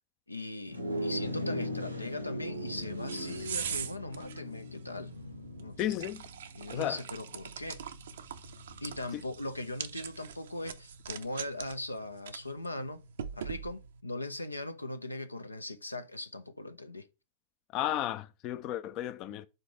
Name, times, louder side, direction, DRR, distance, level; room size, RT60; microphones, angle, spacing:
voice 1, 0.3-5.1 5.6-5.8 6.5-7.8 8.8-13.0 13.3-17.1, left 1 dB, 85° left, 0.6 m, -39 dB
sound 1, 0.7-10.3, equal, 90° right, 1.0 m, -40 dB
sound 2, 2.5-14.0, right 8 dB, 65° right, 0.6 m, -43 dB
voice 2, 5.8-6.2 6.7-7.0 9.1-9.2 17.7-19.5, left 13 dB, 40° left, 0.4 m, -33 dB
5.2 x 3.9 x 5.9 m
figure-of-eight pair, 90°, 0 cm